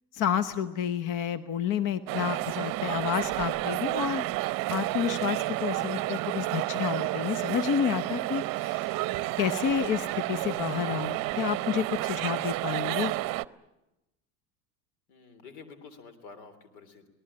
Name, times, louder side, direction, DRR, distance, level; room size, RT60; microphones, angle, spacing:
voice 1, 0.1-4.2 4.7-9.0 9.4-13.1, left 8 dB, 45° left, 12 dB, 1.0 m, -30 dB
sound 1, 2.1-13.4, right 19 dB, 50° right, 0.7 m, -31 dB
voice 2, 15.1-17.1, left 5 dB, 80° left, 10 dB, 3.4 m, -49 dB
24.5 x 18.5 x 8.8 m, 0.96 s
supercardioid pair, 95°, 43 cm